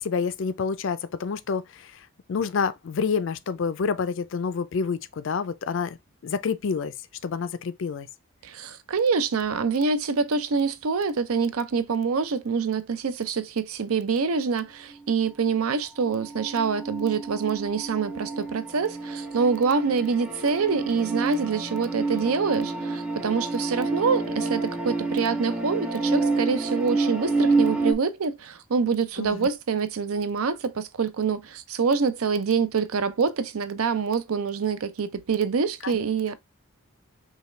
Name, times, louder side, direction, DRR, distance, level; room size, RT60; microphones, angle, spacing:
voice 1, 0.0-6.9 7.2-8.1 29.2-29.5 35.8-35.9, left 5 dB, 60° left, 0.4 m, -28 dB
voice 2, 8.4-36.3, right 5 dB, 80° right, 0.5 m, -26 dB
sound 1, 16.0-27.9, right 3 dB, 5° right, 0.5 m, -28 dB
5.5 x 2.3 x 3.1 m
head